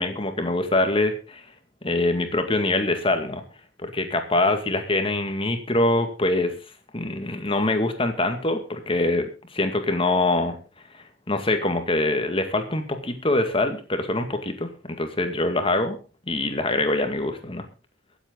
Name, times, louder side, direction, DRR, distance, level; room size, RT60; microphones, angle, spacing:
voice 1, 0.0-1.4 1.8-3.4 3.8-6.6 6.9-9.3 9.5-10.6 11.3-16.0 16.3-17.7, left 2 dB, 30° left, 7 dB, 2.1 m, -24 dB
23.5 x 8.1 x 3.9 m, 0.34 s
head